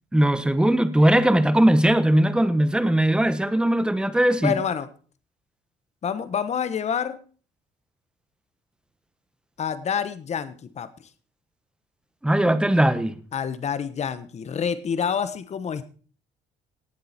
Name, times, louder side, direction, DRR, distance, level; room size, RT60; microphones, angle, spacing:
voice 1, 0.1-4.5 12.2-13.2, right 1 dB, 5° right, 1.2 m, -19 dB
voice 2, 4.4-4.9 6.0-7.2 9.6-10.9 13.3-15.8, left 7 dB, 40° left, 1.3 m, -27 dB
18.0 x 7.7 x 4.4 m
cardioid pair, 110°, 17 cm